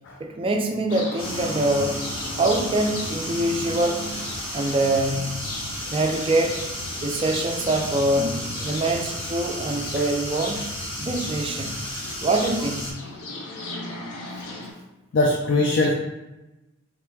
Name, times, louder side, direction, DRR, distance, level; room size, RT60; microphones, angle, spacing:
voice 1, 0.2-2.0 2.3-4.0 4.5-5.5 5.9-6.7 7.0-10.6 11.0-11.9 12.2-13.0, right 2 dB, 25° right, 3 dB, 0.4 m, -24 dB
sound 1, 0.9-14.7, left 2 dB, 90° left, 0.8 m, -37 dB
sound 2, 1.2-12.9, equal, 25° left, 1.2 m, -33 dB
voice 2, 15.1-16.0, left 2 dB, 55° left, -1 dB, 0.5 m, -23 dB
3.4 x 3.0 x 3.4 m, 1.0 s
head